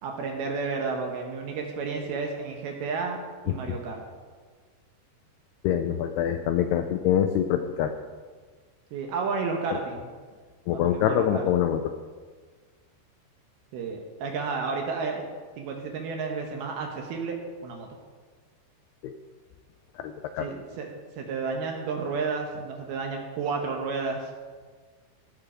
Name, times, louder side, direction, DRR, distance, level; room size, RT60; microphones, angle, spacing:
voice 1, 0.0-3.2 3.4-4.0 8.9-10.1 10.7-11.5 13.7-15.3 15.6-17.4 17.6-17.9 20.4-20.9 21.2-24.2, right 4 dB, 70° right, 2 dB, 2.6 m, -31 dB
voice 2, 5.6-7.9 10.7-11.9 19.0-19.1 20.0-20.5, left 10 dB, 90° left, 7 dB, 2.3 m, -25 dB
16.5 x 6.6 x 5.0 m, 1.5 s
omnidirectional pair, 5.3 m